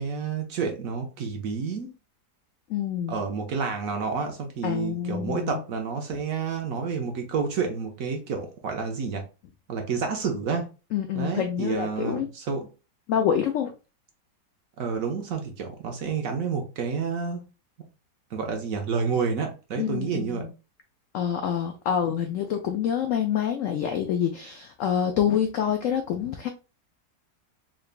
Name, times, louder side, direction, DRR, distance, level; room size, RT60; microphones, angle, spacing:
voice 1, 0.0-1.9 3.1-9.2 9.7-10.7 11.1-12.7 14.8-17.5 18.3-20.5, right 5 dB, 60° right, 1.0 m, -29 dB
voice 2, 2.7-3.1 4.6-5.6 10.9-12.3 13.1-13.7 19.8-20.5 21.1-26.5, left 9 dB, 80° left, 0.7 m, -27 dB
3.8 x 3.3 x 2.4 m
omnidirectional pair, 1.9 m